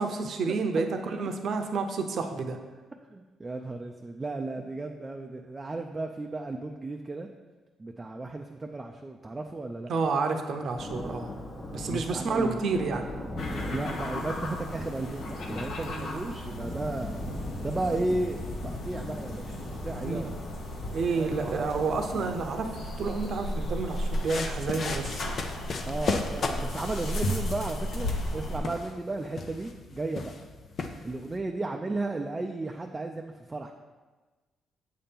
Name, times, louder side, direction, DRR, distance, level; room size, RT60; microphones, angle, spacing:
voice 1, 0.0-2.6 9.9-11.3 11.7-13.1 15.9-16.2 20.0-20.2 20.9-25.3, right 4 dB, 60° right, 5 dB, 0.7 m, -30 dB
voice 2, 3.1-7.3 7.8-9.9 11.9-12.6 13.7-17.2 17.6-18.4 18.6-20.3 21.2-22.3 25.9-30.3 31.0-33.7, right 2 dB, 20° right, 3 dB, 0.4 m, -34 dB
Thunder, 10.8-23.8, left 1 dB, 25° left, 1.0 m, -39 dB
sound 1, 13.4-28.6, left 1 dB, 70° left, 1.0 m, -35 dB
sound 2, 23.9-31.4, left 4 dB, 50° left, 0.6 m, -36 dB
7.6 x 2.9 x 5.3 m, 1.3 s
cardioid pair, 90°, 0 cm